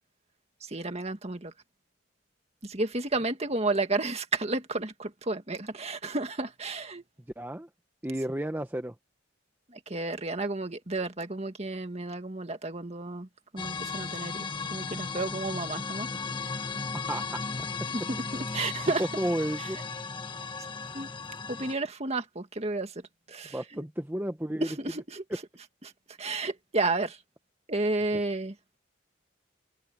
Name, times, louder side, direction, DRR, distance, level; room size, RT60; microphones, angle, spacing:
voice 1, 0.6-1.5 2.6-7.0 9.9-13.3 13.5-16.1 17.9-19.1 19.6-19.7 20.9-21.1 21.5-22.9 23.3-23.8 24.6-25.2 26.2-27.2 27.7-28.6, right 2 dB, 35° right, 1.9 m, -32 dB
voice 2, 7.4-7.7 8.0-8.9 17.1-17.4 19.0-19.8 23.5-24.7, right 1 dB, 10° right, 0.8 m, -32 dB
sound 1, 13.6-21.7, left 4 dB, 25° left, 1.3 m, -36 dB
open air
head